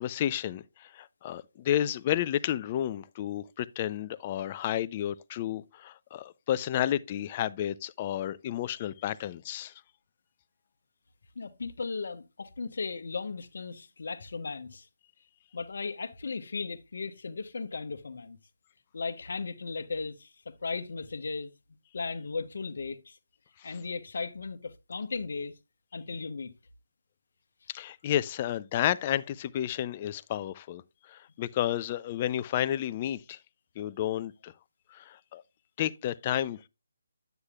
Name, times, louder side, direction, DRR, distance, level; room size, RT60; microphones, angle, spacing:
voice 1, 0.0-9.7 23.6-23.7 27.7-30.8 31.1-33.4 33.8-34.5 34.9-35.4 35.8-36.7, left 11 dB, 30° left, 0.4 m, -31 dB
voice 2, 11.3-14.9 15.5-18.4 18.9-21.5 21.9-23.2 23.6-25.5 25.9-26.5, left 4 dB, 65° left, 0.9 m, -36 dB
9.6 x 8.0 x 2.3 m
figure-of-eight pair, 155°, 0 cm